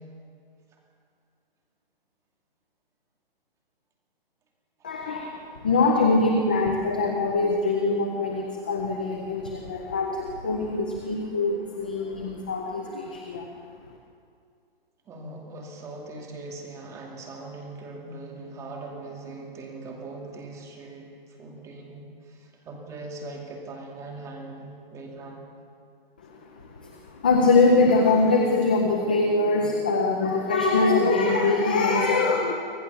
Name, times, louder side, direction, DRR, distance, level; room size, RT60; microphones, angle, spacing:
voice 1, 4.8-14.0 26.2-32.5, left 3 dB, 10° left, 2 dB, 0.4 m, -23 dB
voice 2, 15.1-25.5, right 2 dB, 10° right, 0 dB, 2.5 m, -40 dB
25.0 x 16.0 x 6.9 m, 2.4 s
hypercardioid pair, 165°, 30 cm